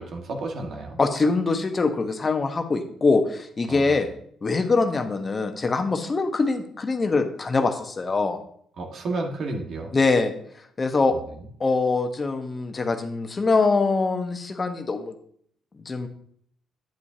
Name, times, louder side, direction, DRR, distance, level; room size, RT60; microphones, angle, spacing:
voice 1, 0.0-1.0 3.7-3.9 8.8-9.9, right 2 dB, 60° right, 2 dB, 1.6 m, -31 dB
voice 2, 1.0-4.1 4.4-8.4 9.9-10.3 10.8-11.1 11.6-15.1 15.8-16.1, left 3 dB, 35° left, 7 dB, 1.1 m, -23 dB
9.1 x 8.4 x 2.8 m, 0.63 s
cardioid pair, 90°, 0 cm